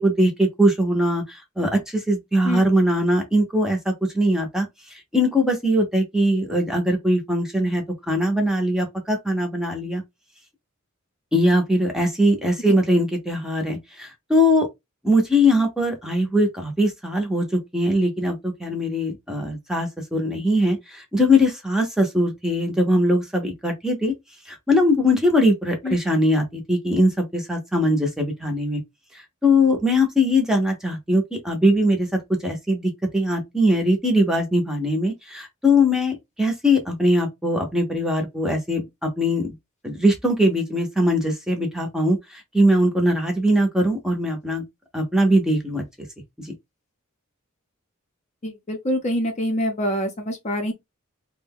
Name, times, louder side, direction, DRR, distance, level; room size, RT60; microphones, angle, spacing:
voice 1, 0.0-10.0 11.3-14.7 15.0-24.1 24.5-28.8 29.4-32.1 32.4-39.5 39.8-44.6 44.9-45.8 46.4-46.5, equal, 5° right, 0.7 m, -21 dB
voice 2, 48.4-50.7, equal, 35° left, 0.6 m, -25 dB
2.5 x 2.2 x 3.5 m
head